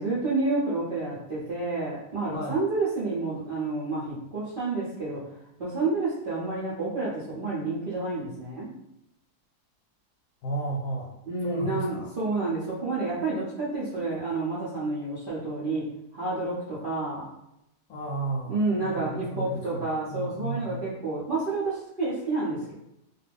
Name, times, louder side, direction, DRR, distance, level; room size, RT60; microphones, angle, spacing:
voice 1, 0.0-5.3 5.6-8.7 11.3-15.8 16.1-17.3 18.5-22.7, right 3 dB, 55° right, -9 dB, 0.6 m, -29 dB
voice 2, 10.4-11.2 11.4-12.1 17.9-20.9, right 2 dB, 70° left, 0 dB, 1.0 m, -33 dB
2.6 x 2.4 x 3.4 m, 0.84 s
omnidirectional pair, 1.8 m